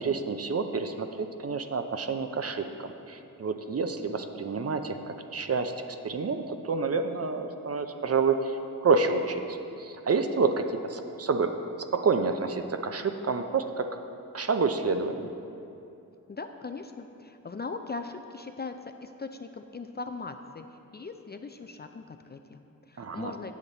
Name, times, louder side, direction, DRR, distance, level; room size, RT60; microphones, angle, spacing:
voice 1, 0.0-5.7 6.0-11.5 11.9-14.0 14.3-15.3 23.0-23.3, right 4 dB, 40° right, 7 dB, 0.6 m, -28 dB
voice 2, 16.3-23.5, left 4 dB, 30° left, 6 dB, 0.4 m, -40 dB
8.3 x 7.3 x 4.0 m, 2.7 s
cardioid pair, 55°, 37 cm